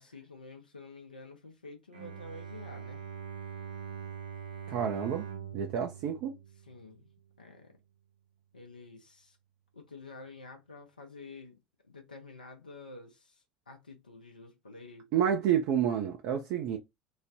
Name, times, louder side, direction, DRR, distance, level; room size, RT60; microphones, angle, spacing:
voice 1, 0.0-3.0 6.7-7.1 7.4-7.8 8.5-9.4 9.7-11.6 11.9-15.3, left 3 dB, 90° left, 0.6 m, -49 dB
Bowed string instrument, 1.9-7.2, right 8 dB, 85° right, 0.9 m, -43 dB
voice 2, 4.7-5.3 5.5-6.4 15.1-16.8, right 9 dB, 55° right, 0.4 m, -29 dB
3.1 x 2.1 x 2.7 m
figure-of-eight pair, 70°, 4 cm